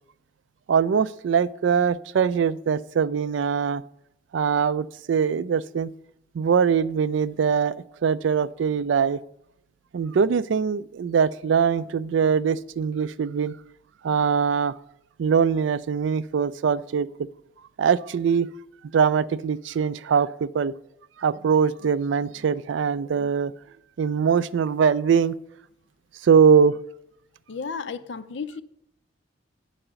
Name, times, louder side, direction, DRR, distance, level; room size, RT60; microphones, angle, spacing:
voice 1, 0.7-3.8 4.3-5.9 6.3-7.8 8.0-9.2 9.9-13.6 14.0-14.7 15.2-17.3 17.8-18.5 18.9-20.7 21.2-23.5 24.0-25.4 26.2-26.8, right 6 dB, 75° right, 17 dB, 0.4 m, -22 dB
voice 2, 27.5-28.6, left 5 dB, 70° left, 12 dB, 0.6 m, -33 dB
8.8 x 4.9 x 6.8 m, 0.76 s
head